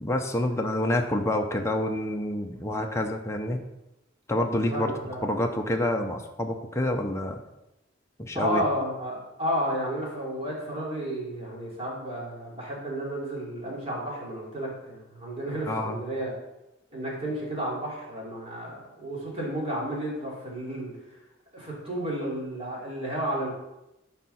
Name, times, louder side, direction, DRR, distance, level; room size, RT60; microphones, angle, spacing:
voice 1, 0.0-3.6 4.3-4.9 5.2-7.4 8.2-8.6 15.7-16.0, left 1 dB, 15° left, 2 dB, 0.6 m, -27 dB
voice 2, 4.7-5.2 8.3-16.4 16.9-21.1 21.5-23.5, right 1 dB, 30° right, -4 dB, 2.9 m, -32 dB
11.5 x 4.7 x 4.1 m, 0.92 s
head